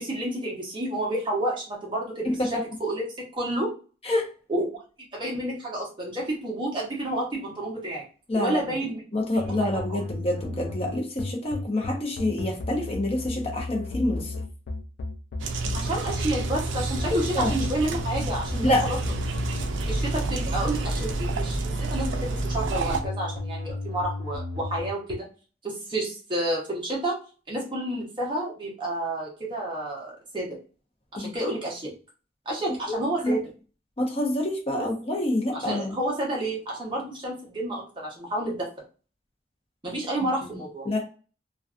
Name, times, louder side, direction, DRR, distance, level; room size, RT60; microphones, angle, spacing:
voice 1, 0.0-3.7 4.5-4.6 5.0-8.0 8.3-9.0 9.6-10.0 15.7-19.1 19.9-25.3 25.6-27.2 27.5-30.6 31.1-31.9 32.5-33.4 34.8-34.9 35.5-38.7 39.8-40.9, right 1 dB, 25° right, 0.8 m, -30 dB
voice 2, 8.3-8.7 9.1-14.3 17.3-17.5 18.6-18.9 31.2-31.5 32.9-33.4 34.0-35.9 40.4-40.6 40.9-41.0, left 1 dB, 30° left, 0.6 m, -27 dB
sound 1, 9.4-25.2, left 1 dB, 80° left, 0.4 m, -33 dB
sound 2, 15.4-23.0, right 3 dB, 80° right, 0.4 m, -30 dB
2.5 x 2.3 x 2.4 m
head